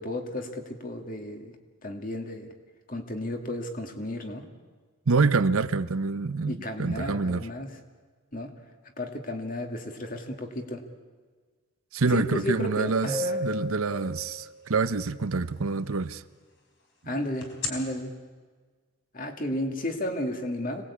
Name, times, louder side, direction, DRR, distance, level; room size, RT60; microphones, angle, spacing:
voice 1, 0.0-1.6 1.8-2.5 2.9-4.4 6.5-7.8 8.3-8.5 9.0-10.8 12.1-13.4 17.1-18.1 19.1-20.9, left 1 dB, 40° left, 2.2 m, -33 dB
voice 2, 5.1-7.5 11.9-16.2, right 4 dB, 80° right, 0.8 m, -26 dB
sound 1, 12.5-12.6 13.0-14.8 17.4-17.7, left 2 dB, 60° left, 4.2 m, -32 dB
26.0 x 19.5 x 8.5 m
head